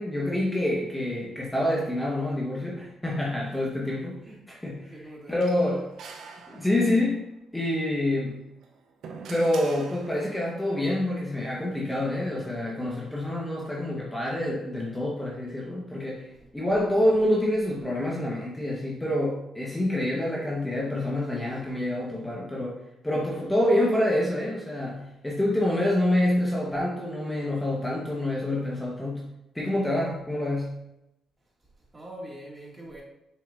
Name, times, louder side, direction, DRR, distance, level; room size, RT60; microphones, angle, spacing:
voice 1, 0.0-4.1 4.5-4.9 5.3-5.8 6.5-7.2 7.5-8.4 9.3-22.8 23.0-29.2 29.5-30.8, left 1 dB, 10° left, -4 dB, 1.4 m, -27 dB
voice 2, 4.7-5.8 6.4-6.6 16.3-16.5 31.6-33.0, right 1 dB, 25° right, -3 dB, 2.4 m, -45 dB
sound 1, 5.4-7.1 8.5-10.5, right 5 dB, 70° right, 0.9 m, -45 dB
7.1 x 6.5 x 2.7 m, 0.88 s
cardioid pair, 90°, 0 cm